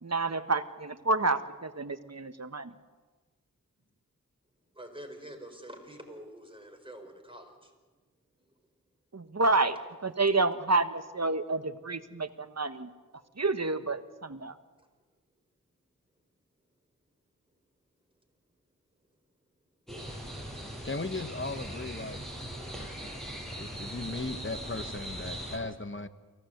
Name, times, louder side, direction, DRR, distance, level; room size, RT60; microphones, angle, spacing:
voice 1, 0.0-2.7 9.1-9.7 10.0-12.9 13.4-14.5, right 3 dB, 50° right, 10 dB, 1.3 m, -29 dB
voice 2, 4.7-7.7 8.5-8.6 13.2-13.3, right 1 dB, 15° right, 3 dB, 4.8 m, -46 dB
sound 1, 19.9-25.6, right 1 dB, ahead, 6.8 m, -40 dB
voice 3, 20.8-22.2 22.8-22.9 23.6-26.1, left 3 dB, 35° left, 10 dB, 1.3 m, -37 dB
24.0 x 16.5 x 8.0 m, 1.3 s
wide cardioid pair, 40°, 34 cm